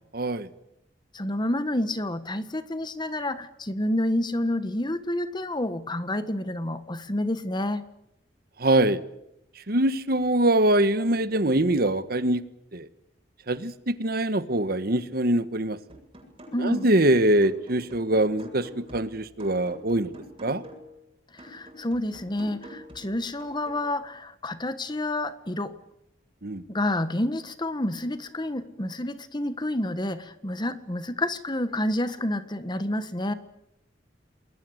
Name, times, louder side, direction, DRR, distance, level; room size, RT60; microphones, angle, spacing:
voice 1, 0.1-0.5 8.6-9.0 9.7-12.4 12.7-12.9 13.5-15.8 16.6-20.1 20.4-20.6 26.4-26.6, right 1 dB, 60° right, 13 dB, 1.5 m, -23 dB
voice 2, 1.1-7.8 16.5-16.9 21.3-25.7 26.7-33.3, left 1 dB, 25° left, 12 dB, 1.5 m, -29 dB
sound 1, 15.9-17.1 17.4-20.9 21.4-23.9, equal, 30° right, 7.8 m, -47 dB
28.0 x 21.5 x 8.1 m, 0.84 s
head